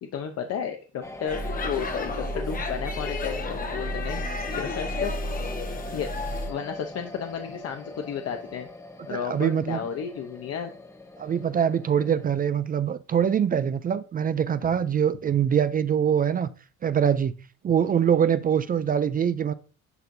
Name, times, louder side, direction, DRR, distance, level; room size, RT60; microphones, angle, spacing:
voice 1, 0.0-4.2 4.5-5.2 5.9-6.1 6.5-8.7 9.1-10.7, left 7 dB, 55° left, 0.9 m, -33 dB
sound 1, 1.0-12.3, left 1 dB, 10° left, 0.7 m, -42 dB
Speech / Shout / Subway metro underground, 1.3-6.5, left 2 dB, 30° left, 1.0 m, -31 dB
voice 2, 9.1-9.8 11.2-16.5 16.8-17.3 17.6-19.5, right 8 dB, 30° right, 0.4 m, -23 dB
11.0 x 4.3 x 2.7 m
cardioid pair, 135°, 29 cm